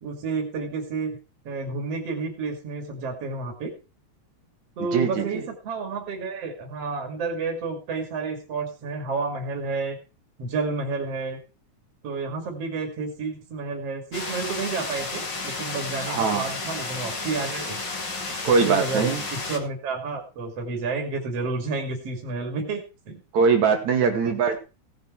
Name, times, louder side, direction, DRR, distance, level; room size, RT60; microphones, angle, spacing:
voice 1, 0.0-1.2 1.5-3.7 4.8-10.0 10.4-11.4 12.0-17.8 18.7-23.2 24.0-24.4, right 4 dB, 55° right, 3 dB, 3.6 m, -30 dB
voice 2, 4.8-5.5 16.1-16.5 18.4-19.2 23.3-24.6, right 5 dB, 75° right, 5 dB, 3.5 m, -22 dB
sound 1, 14.1-19.6, left 3 dB, 40° left, 3.1 m, -32 dB
17.5 x 8.1 x 4.6 m, 0.32 s
omnidirectional pair, 3.3 m